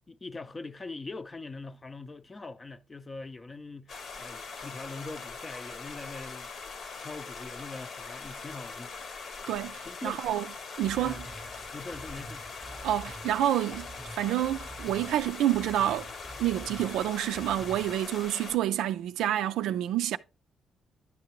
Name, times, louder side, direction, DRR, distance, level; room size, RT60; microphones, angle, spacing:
voice 1, 0.1-6.5 7.0-8.9 9.8-10.4 11.0-11.2 11.7-12.5, left 3 dB, 25° left, 0.5 m, -42 dB
sound 1, 3.9-18.6, left 4 dB, 60° left, 1.0 m, -42 dB
voice 2, 9.5-10.5 10.8-11.2 12.8-13.9 14.1-16.1 16.4-20.2, right 12 dB, 85° right, 0.4 m, -28 dB
sound 2, 10.8-18.0, right 2 dB, 15° right, 0.6 m, -47 dB
10.5 x 5.9 x 3.0 m
cardioid pair, 90°, 0 cm